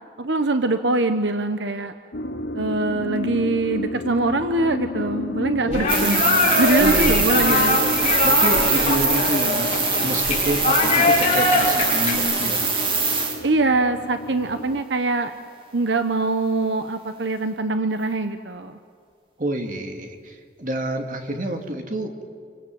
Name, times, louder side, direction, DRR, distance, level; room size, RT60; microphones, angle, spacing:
voice 1, 0.2-1.9 2.5-8.1 13.4-15.3 15.7-18.8, right 3 dB, 75° right, 8 dB, 1.1 m, -23 dB
sound 1, 2.1-14.8, left 1 dB, 70° left, 1.0 m, -32 dB
sound 2, 5.7-12.2, left 3 dB, 35° left, 5.9 m, -22 dB
voice 2, 5.7-7.8 8.2-12.7 19.4-22.2, right 1 dB, 45° right, 4 dB, 2.7 m, -28 dB
sound 3, 5.9-13.4, right 4 dB, 30° right, 3.4 m, -22 dB
29.0 x 25.5 x 7.9 m, 2.2 s
head